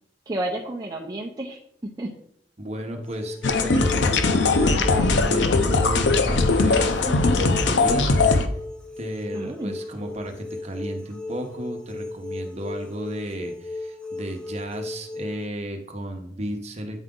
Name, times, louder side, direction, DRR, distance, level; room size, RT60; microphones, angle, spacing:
voice 1, 0.3-2.1 9.3-9.7, right 1 dB, 20° right, -2 dB, 0.7 m, -31 dB
voice 2, 2.6-8.0 9.0-17.0, right 1 dB, 40° right, 4 dB, 1.0 m, -33 dB
sound 1, 3.0-15.5, left 2 dB, 5° left, 0.7 m, -36 dB
sound 2, 3.4-8.5, left 3 dB, 85° left, 0.6 m, -20 dB
9.1 x 4.8 x 3.8 m, 0.69 s
head